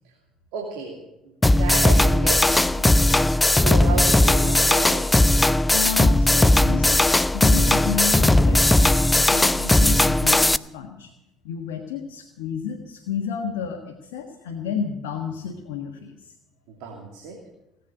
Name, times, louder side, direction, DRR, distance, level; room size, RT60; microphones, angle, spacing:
voice 1, 0.5-3.1 3.5-5.1 16.7-17.4, right 5 dB, 70° right, -1 dB, 2.9 m, -33 dB
sound 1, 1.4-10.6, left 1 dB, 10° left, 0.5 m, -18 dB
voice 2, 5.7-11.1 11.4-16.3, left 7 dB, 75° left, 2 dB, 1.5 m, -31 dB
18.5 x 8.7 x 8.9 m, 0.90 s
hypercardioid pair, 55°, 0 cm